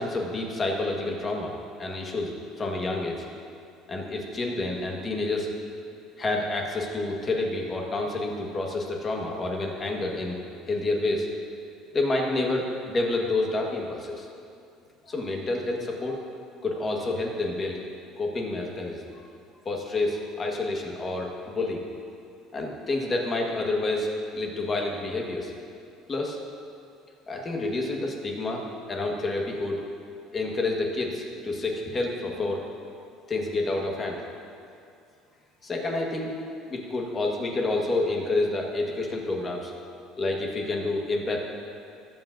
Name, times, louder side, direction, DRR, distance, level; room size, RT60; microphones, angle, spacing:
voice 1, 0.0-1.5 1.8-2.3 2.6-3.2 3.9-5.5 6.2-10.4 10.7-11.3 11.9-14.3 15.1-16.2 16.6-17.8 18.2-19.0 19.6-21.8 22.5-24.1 24.3-25.5 26.1-26.4 27.3-28.6 28.9-29.8 30.3-32.6 33.3-34.2 35.6-36.3 36.7-39.7 40.2-41.4, left 2 dB, 20° left, 0 dB, 1.3 m, -28 dB
21.0 x 7.8 x 2.6 m, 2.4 s
cardioid pair, 160°, 0 cm